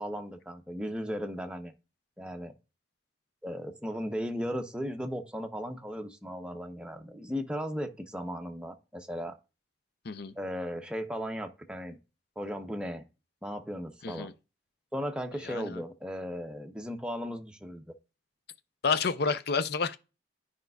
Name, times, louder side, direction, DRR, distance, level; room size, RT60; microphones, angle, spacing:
voice 1, 0.0-1.7 2.2-2.5 3.4-9.3 10.4-12.0 12.4-13.1 13.4-14.3 14.9-17.8, equal, 5° right, 0.7 m, -36 dB
voice 2, 15.4-15.8 18.8-20.0, left 5 dB, 60° left, 0.6 m, -29 dB
10.5 x 5.1 x 2.3 m
head